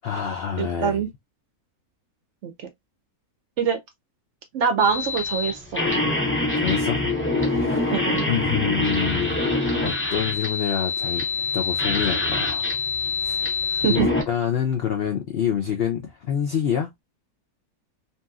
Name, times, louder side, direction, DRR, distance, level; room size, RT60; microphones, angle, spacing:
voice 1, 0.0-1.0 6.5-7.0 7.4-8.0 8.3-9.4 9.8-12.7 13.2-13.5 13.9-16.9, left 8 dB, 75° left, 0.5 m, -27 dB
voice 2, 0.6-1.1 2.4-2.7 3.6-3.8 4.5-5.8 7.9-8.3 13.8-14.1, right 7 dB, 65° right, 0.7 m, -24 dB
sound 1, 4.8-14.2, left 3 dB, 20° left, 0.4 m, -25 dB
2.9 x 2.7 x 2.3 m
omnidirectional pair, 1.6 m